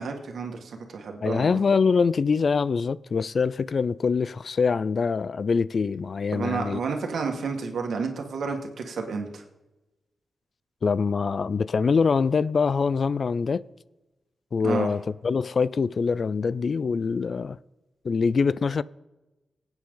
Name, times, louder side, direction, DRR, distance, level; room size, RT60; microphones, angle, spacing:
voice 1, 0.0-1.6 6.3-9.4 14.6-14.9, right 5 dB, 85° right, 1.8 m, -31 dB
voice 2, 1.2-6.8 10.8-13.6 14.5-17.6 18.0-18.8, left 5 dB, 45° left, 0.3 m, -24 dB
23.5 x 8.9 x 3.8 m
wide cardioid pair, 165°, 0 cm